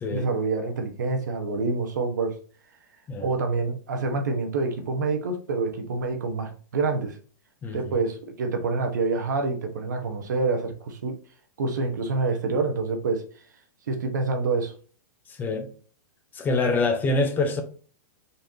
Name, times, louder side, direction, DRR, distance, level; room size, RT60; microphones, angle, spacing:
voice 1, 0.1-2.4 3.2-7.2 7.7-11.2 11.6-13.2 13.9-14.7, right 3 dB, 85° right, 1.0 m, -27 dB
voice 2, 7.6-8.0 15.3-15.7 16.3-17.6, left 3 dB, 20° left, 0.7 m, -25 dB
4.0 x 3.2 x 2.7 m
hypercardioid pair, 135°, 10 cm